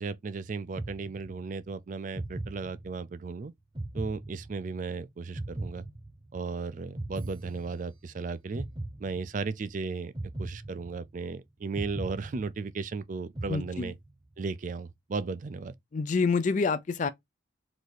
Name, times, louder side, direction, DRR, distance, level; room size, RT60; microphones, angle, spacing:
voice 1, 0.0-3.5 3.9-5.9 6.3-8.7 9.0-10.1 10.4-14.0 14.4-15.7, right 4 dB, 40° right, 0.3 m, -35 dB
sound 1, 0.8-1.6 2.1-3.2 3.8-4.9 5.4-6.5 7.0-8.1 8.5-9.6 10.1-11.3 11.8-12.9 13.4-14.2, right 1 dB, 25° right, 0.8 m, -39 dB
voice 2, 13.5-13.9 15.9-17.1, left 4 dB, 40° left, 0.4 m, -27 dB
4.0 x 2.7 x 4.7 m
head